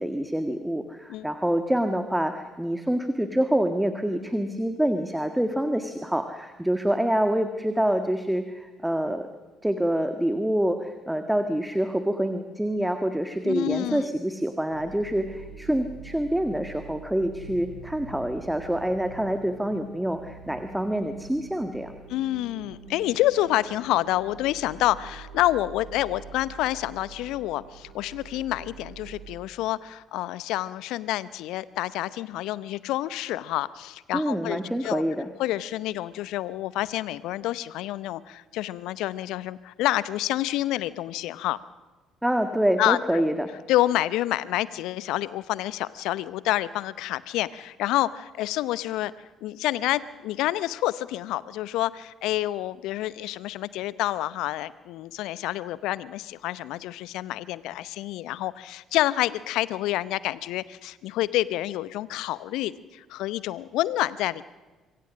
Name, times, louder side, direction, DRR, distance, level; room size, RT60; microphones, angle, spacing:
voice 1, 0.0-9.3 9.6-21.9 34.1-35.3 42.2-43.5, right 1 dB, 5° right, 8 dB, 1.7 m, -26 dB
voice 2, 13.4-14.1 22.1-35.0 35.4-41.6 42.8-43.3 43.7-49.1 49.4-64.4, left 15 dB, 60° left, 18 dB, 0.7 m, -28 dB
sound 1, 14.7-29.4, right 4 dB, 80° right, 5.6 m, -45 dB
26.5 x 23.5 x 6.4 m, 1.3 s
figure-of-eight pair, 50°, 0 cm